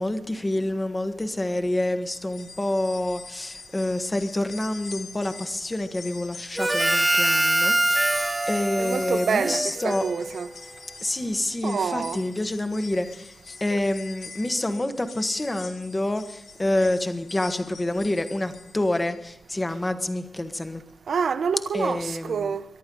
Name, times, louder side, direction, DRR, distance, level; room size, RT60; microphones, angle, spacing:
voice 1, 0.0-8.2 8.5-10.0 11.0-20.8 21.7-22.5, left 1 dB, 15° left, 1.2 m, -27 dB
sound 1, 2.0-19.3 19.7-19.8 20.9-21.0, left 4 dB, 75° left, 3.1 m, -45 dB
Harmonica, 6.6-10.4, right 1 dB, 15° right, 0.9 m, -24 dB
voice 2, 8.8-10.5 11.6-12.2 13.7-13.8 21.1-22.7, right 6 dB, 70° right, 0.8 m, -27 dB
23.5 x 11.5 x 3.8 m
wide cardioid pair, 155°, 0 cm